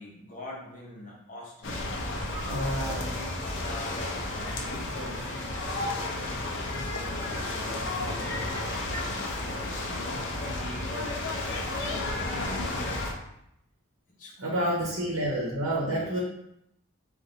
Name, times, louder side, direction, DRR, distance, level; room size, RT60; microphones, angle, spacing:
voice 1, 0.0-1.9 2.4-9.9 10.4-12.9 14.2-15.2 15.7-16.2, left 1 dB, 35° left, -4 dB, 1.0 m, -45 dB
sound 1, 1.6-13.1, left 2 dB, 55° left, 0.6 m, -32 dB
voice 2, 2.4-3.1 14.4-16.2, right 1 dB, 80° right, -4 dB, 0.9 m, -29 dB
sound 2, 8.1-9.2, left 1 dB, 10° left, 0.4 m, -41 dB
3.9 x 2.6 x 3.9 m, 0.78 s
head